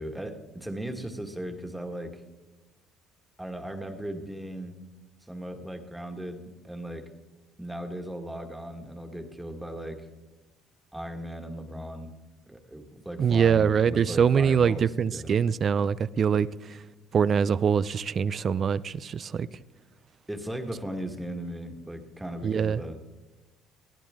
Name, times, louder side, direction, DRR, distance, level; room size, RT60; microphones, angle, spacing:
voice 1, 0.0-2.2 3.4-4.8 5.3-7.1 7.6-10.0 10.9-12.1 12.5-14.9 15.1-15.4 20.3-23.0, right 1 dB, 5° right, 1.7 m, -37 dB
voice 2, 13.2-16.8 17.1-19.5 22.4-22.8, right 7 dB, 40° right, 0.5 m, -24 dB
21.0 x 15.0 x 3.7 m
cardioid pair, 120°, 0 cm